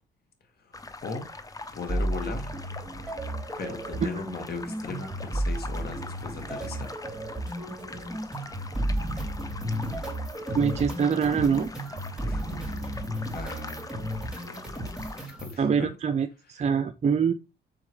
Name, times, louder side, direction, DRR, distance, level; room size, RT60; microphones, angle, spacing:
sound 1, 0.7-15.3, left 2 dB, 15° left, 0.8 m, -43 dB
voice 1, 1.7-2.5 3.6-7.0 12.2-12.9 13.3-13.9 15.3-15.9 16.5-16.6, left 4 dB, 50° left, 2.0 m, -37 dB
sound 2, 1.9-15.6, right 1 dB, 5° right, 3.2 m, -33 dB
voice 2, 10.5-11.7 15.6-17.3, right 6 dB, 35° right, 0.5 m, -24 dB
6.2 x 4.8 x 3.2 m
cardioid pair, 90°, 20 cm